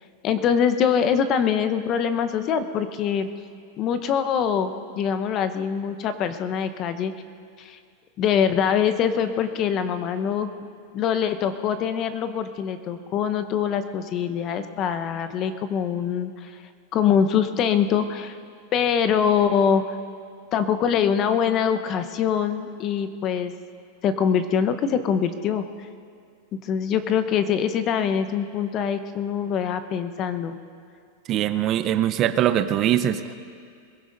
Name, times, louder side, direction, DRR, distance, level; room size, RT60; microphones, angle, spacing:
voice 1, 0.2-3.3 3.8-7.1 7.6-7.8 8.2-10.5 10.9-16.5 16.9-18.4 18.7-19.8 20.5-23.5 24.0-25.6 26.6-30.6, left 7 dB, 35° left, 10 dB, 0.9 m, -23 dB
voice 2, 31.3-33.3, right 11 dB, 35° right, 11 dB, 0.6 m, -22 dB
22.5 x 15.5 x 4.0 m, 2.2 s
supercardioid pair, 145°, 0 cm